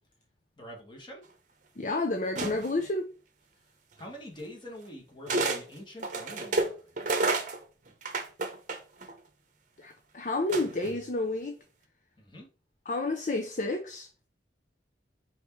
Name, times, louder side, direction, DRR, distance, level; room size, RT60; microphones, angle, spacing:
voice 1, 0.6-1.2 4.0-7.2 12.2-12.5, equal, 25° left, 1.7 m, -45 dB
voice 2, 1.8-3.1 9.8-11.6 12.9-14.1, left 2 dB, 40° left, 0.6 m, -30 dB
sound 1, 2.3-2.9 4.0-4.1 5.3-5.6 6.0-9.1 10.5-11.0, right 3 dB, 45° right, 0.8 m, -30 dB
4.8 x 4.3 x 4.7 m
head